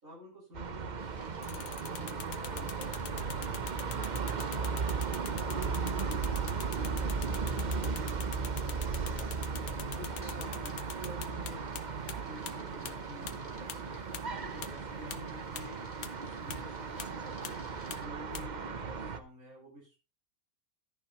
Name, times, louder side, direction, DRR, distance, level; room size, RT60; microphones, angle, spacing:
voice 1, 0.0-3.3 3.7-9.4 9.8-11.6 12.1-17.7 18.0-20.0, equal, 70° right, -4 dB, 6.5 m, -52 dB
sound 1, 0.5-19.2, right 5 dB, 40° right, 0.8 m, -36 dB
sound 2, 1.0-18.1, left 2 dB, 35° left, 2.3 m, -58 dB
sound 3, 1.4-11.8 12.1-12.2 12.5-12.6 12.9-13.0 13.3-13.4 13.7-13.8 14.1-14.2 14.6-14.7 15.1-15.2 15.6-15.7 16.0-16.1 16.5-16.6 17.0-17.1 17.4-17.5 17.9-18.0 18.3-18.4, left 10 dB, 90° left, 1.3 m, -42 dB
11.5 x 10.5 x 3.0 m, 0.31 s
omnidirectional pair, 1.5 m